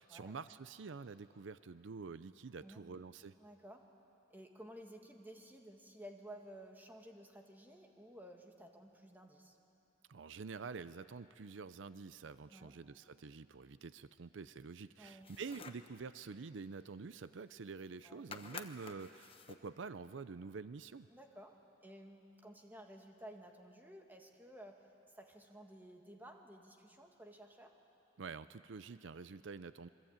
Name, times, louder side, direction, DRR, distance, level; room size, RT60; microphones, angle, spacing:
voice 1, 0.0-3.4 10.1-21.1 28.2-29.9, right 4 dB, 75° right, 14 dB, 0.5 m, -48 dB
voice 2, 3.4-3.9 4.3-9.6 12.5-12.7 15.0-15.4 18.0-18.3 21.1-21.6 21.8-24.9 25.2-27.8, right 1 dB, 10° right, 2 dB, 1.9 m, -54 dB
sound 1, 15.1-15.9 17.4-17.5 17.7-18.0 18.3-19.7, left 5 dB, 30° left, 1.0 m, -51 dB
27.0 x 23.0 x 8.9 m, 2.9 s
head